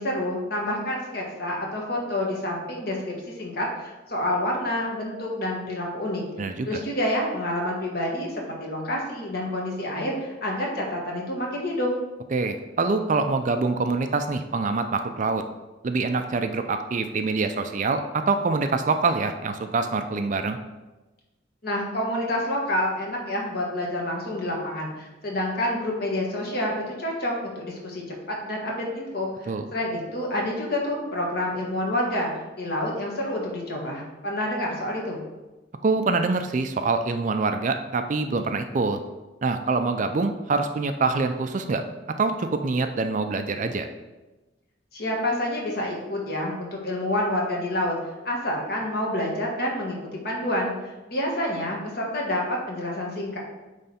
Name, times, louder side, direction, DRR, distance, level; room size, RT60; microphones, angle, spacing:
voice 1, 0.0-6.2 6.6-11.9 21.6-35.2 44.9-48.0 48.2-50.0 50.2-50.7 51.1-53.4, left 1 dB, 55° left, -2 dB, 1.6 m, -28 dB
voice 2, 6.4-6.8 12.3-15.4 15.8-20.6 29.5-29.7 35.8-39.0 39.4-41.8 42.2-43.9, right 3 dB, 40° right, 7 dB, 0.4 m, -25 dB
9.0 x 3.3 x 4.2 m, 1.1 s
head